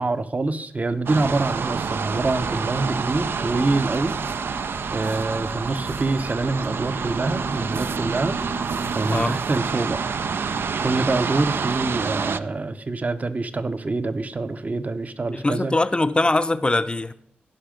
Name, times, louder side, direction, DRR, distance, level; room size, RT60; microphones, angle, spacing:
voice 1, 0.0-4.2 4.4-8.4 8.9-10.0 10.8-15.7, right 3 dB, 40° right, 11 dB, 0.7 m, -25 dB
sound 1, 1.1-12.4, right 5 dB, 75° right, 0.4 m, -28 dB
sound 2, 1.9-9.1, left 3 dB, 90° left, 1.9 m, -41 dB
voice 2, 9.0-9.4 15.3-17.1, left 2 dB, 25° left, 13 dB, 0.5 m, -22 dB
15.0 x 5.6 x 5.1 m, 0.70 s
wide cardioid pair, 70°, 4 cm